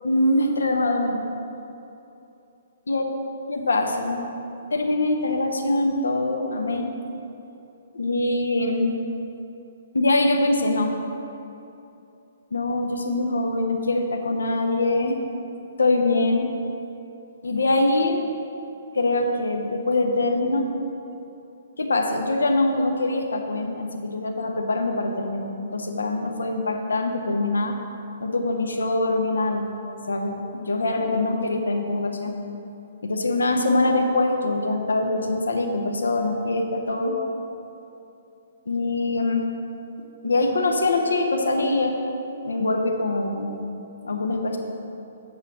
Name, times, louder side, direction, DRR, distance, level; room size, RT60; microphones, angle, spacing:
voice 1, 0.0-1.2 2.9-3.0 3.5-4.3 4.7-6.9 7.9-9.0 9.9-10.9 12.5-15.2 15.8-16.5 17.4-18.3 18.9-20.7 21.8-27.7 28.2-29.7 30.1-32.4 33.0-37.2 38.7-39.5 40.2-41.9 42.4-43.5 44.0-44.6, left 2 dB, 70° left, 3 dB, 1.0 m, -23 dB
7.9 x 5.5 x 6.1 m, 2.9 s
figure-of-eight pair, 125°, 0 cm